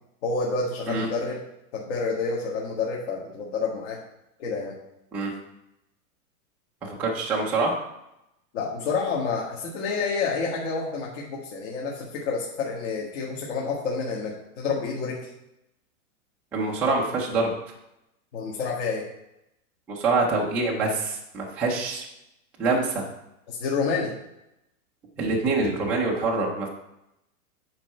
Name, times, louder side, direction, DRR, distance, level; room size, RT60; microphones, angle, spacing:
voice 1, 0.2-1.4 1.7-4.0 4.4-4.7 8.5-15.3 18.3-19.1 23.5-24.1, left 4 dB, 50° left, -4 dB, 1.9 m, -29 dB
voice 2, 6.8-7.7 16.5-17.5 19.9-22.0 22.6-23.1 25.2-26.7, right 3 dB, 5° right, -4 dB, 0.4 m, -25 dB
9.1 x 4.6 x 5.4 m, 0.86 s
supercardioid pair, 160°, 44 cm